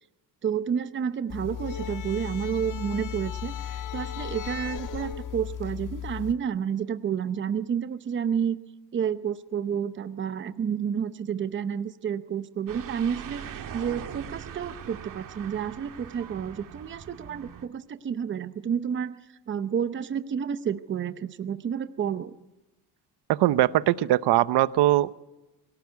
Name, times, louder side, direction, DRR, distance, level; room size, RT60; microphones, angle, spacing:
voice 1, 0.4-3.5 3.9-8.6 8.9-13.4 13.7-19.2 19.5-22.3, right 8 dB, 25° right, 12 dB, 0.8 m, -30 dB
sound 1, 1.3-6.3, left 9 dB, 45° left, 1.6 m, -35 dB
sound 2, 12.7-17.7, right 8 dB, 45° right, 2.0 m, -41 dB
voice 2, 23.3-25.2, right 14 dB, 65° right, 16 dB, 0.9 m, -21 dB
23.0 x 18.0 x 9.6 m, 1.0 s
cardioid pair, 165°, 43 cm